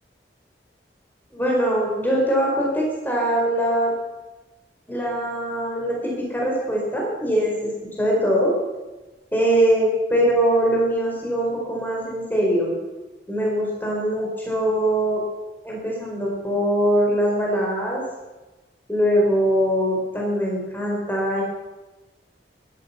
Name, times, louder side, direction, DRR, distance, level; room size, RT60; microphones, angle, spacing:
voice 1, 1.3-3.9 4.9-7.7 8.0-8.5 9.3-12.7 13.3-15.2 15.6-18.0 18.9-21.4, right 1 dB, 10° left, -2 dB, 4.5 m, -22 dB
15.5 x 12.5 x 5.8 m, 1.1 s
head